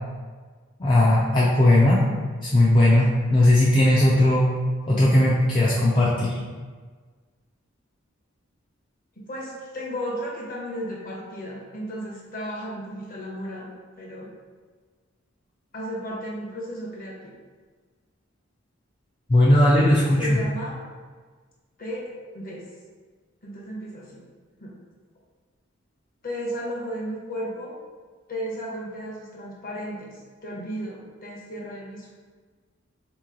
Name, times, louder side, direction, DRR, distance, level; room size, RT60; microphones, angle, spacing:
voice 1, 0.8-2.0 2.5-4.4 4.9-6.4 19.3-20.4, left 1 dB, 25° left, -7 dB, 0.5 m, -18 dB
voice 2, 9.2-14.3 15.7-17.3 20.2-20.8 21.8-22.1 22.3-22.6 23.4-24.2 24.6-24.7 26.2-27.7 28.3-32.1, equal, 45° left, -3 dB, 1.0 m, -34 dB
3.8 x 3.0 x 3.8 m, 1.5 s
head